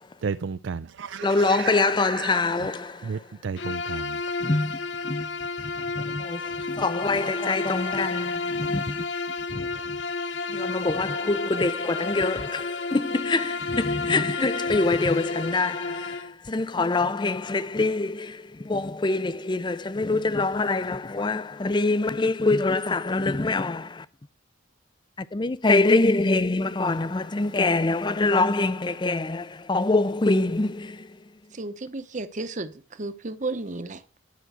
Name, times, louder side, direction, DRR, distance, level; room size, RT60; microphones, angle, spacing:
voice 1, 0.2-4.2, right 6 dB, 70° right, 0.4 m, -33 dB
voice 2, 1.2-2.9 4.4-4.7 5.0-5.2 6.0-6.4 6.8-9.0 9.6-9.7 10.5-16.1 16.5-18.3 18.7-23.9 25.3-31.0, left 3 dB, 25° left, 0.5 m, -24 dB
Bowed string instrument, 3.6-16.3, left 3 dB, 65° left, 0.7 m, -31 dB
voice 3, 31.5-34.0, right 2 dB, 40° right, 0.9 m, -33 dB
11.5 x 6.0 x 8.0 m
head